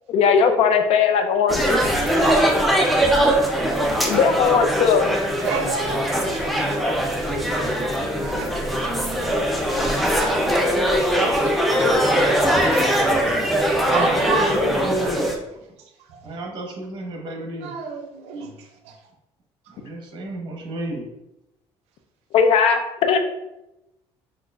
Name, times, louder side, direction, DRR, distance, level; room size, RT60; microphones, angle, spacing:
voice 1, 0.1-1.8 4.0-5.1 22.3-23.2, left 6 dB, 70° left, 7 dB, 0.5 m, -18 dB
sound 1, 1.5-15.3, equal, ahead, 0.6 m, -21 dB
voice 2, 5.4-9.4 9.8-14.9 15.8-16.4 17.6-19.0 19.7-19.8, right 5 dB, 85° right, 3 dB, 0.5 m, -34 dB
voice 3, 13.9-15.3 16.2-17.7 19.7-21.1, equal, 45° right, 0 dB, 1.2 m, -30 dB
5.9 x 2.5 x 2.4 m, 0.91 s
cardioid pair, 115°, 11 cm